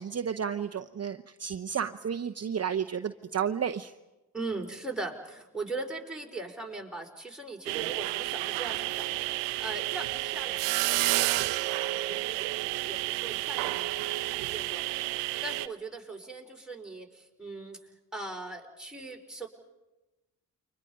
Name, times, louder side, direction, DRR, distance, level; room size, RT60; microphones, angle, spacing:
voice 1, 0.0-3.9, right 7 dB, 35° right, 7 dB, 0.9 m, -32 dB
voice 2, 4.3-9.2 9.6-14.9 15.4-19.5, right 3 dB, ahead, 0 dB, 4.9 m, -40 dB
sound 1, 7.7-15.7, right 18 dB, 85° right, 0.7 m, -30 dB
29.5 x 24.5 x 5.3 m, 1.0 s
hypercardioid pair, 45°, 41 cm